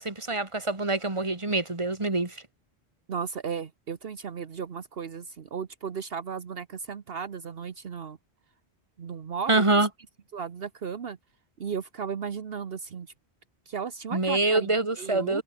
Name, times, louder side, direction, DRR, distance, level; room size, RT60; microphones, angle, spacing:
voice 1, 0.0-2.4 9.5-9.9 14.1-15.4, right 2 dB, 30° right, 2.3 m, -25 dB
voice 2, 3.1-8.2 9.0-9.6 10.3-11.2 11.6-13.1 13.7-14.7 15.0-15.4, right 6 dB, 70° right, 1.2 m, -35 dB
omnidirectional pair, 1.0 m